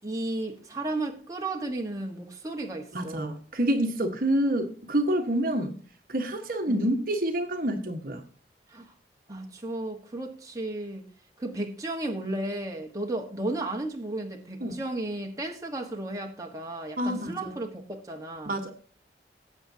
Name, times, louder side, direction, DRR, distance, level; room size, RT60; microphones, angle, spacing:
voice 1, 0.0-3.4 6.7-6.8 8.7-8.9 9.3-11.0 11.4-18.6, right 2 dB, 20° right, 1 dB, 1.4 m, -34 dB
voice 2, 2.9-5.7 6.1-8.2 14.6-14.8 17.0-17.5 18.5-18.7, right 1 dB, 55° right, 5 dB, 1.4 m, -27 dB
18.0 x 8.0 x 2.8 m, 0.42 s
head